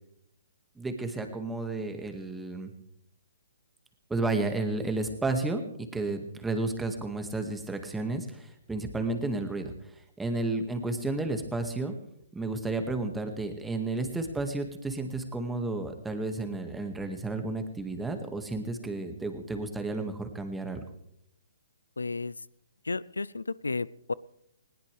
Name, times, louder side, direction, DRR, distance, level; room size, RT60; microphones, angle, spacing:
voice 1, 0.8-2.7 4.1-5.6 5.9-9.7 10.2-12.0 12.3-20.8, right 2 dB, 5° right, 6 dB, 2.0 m, -32 dB
voice 2, 22.0-22.4 22.8-24.1, left 3 dB, 90° left, 21 dB, 0.5 m, -32 dB
20.0 x 18.5 x 3.5 m, 0.75 s
hypercardioid pair, 135°, 0 cm